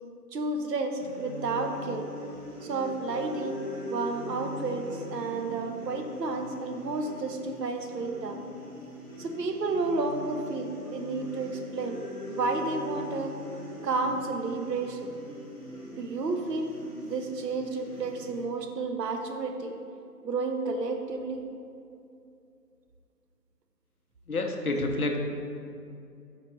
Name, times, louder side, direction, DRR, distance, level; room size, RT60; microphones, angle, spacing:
voice 1, 0.3-2.1 2.6-8.4 9.2-13.3 13.8-15.1 16.0-19.7 20.2-21.4, right 3 dB, 80° right, 5 dB, 0.6 m, -31 dB
sound 1, 1.0-18.4, left 1 dB, ahead, 0.7 m, -41 dB
voice 2, 24.3-25.2, left 2 dB, 65° left, 3 dB, 0.5 m, -28 dB
4.5 x 3.2 x 3.0 m, 2.5 s
figure-of-eight pair, 170°, 48 cm